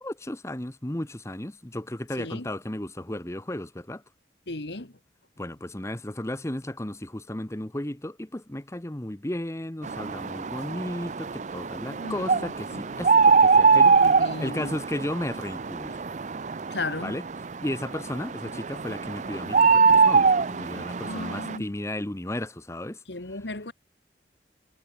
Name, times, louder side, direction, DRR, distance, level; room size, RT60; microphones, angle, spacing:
voice 1, 0.0-4.0 5.4-16.0 17.0-17.2 17.6-23.0 23.3-23.4, left 1 dB, 15° left, 1.0 m, -34 dB
voice 2, 2.2-2.5 4.5-4.9 11.9-12.8 13.9-14.8 16.7-17.2 21.0-21.7 23.1-23.7, left 2 dB, 70° left, 2.2 m, -35 dB
sound 1, 9.8-21.6, right 5 dB, 40° right, 0.5 m, -23 dB
head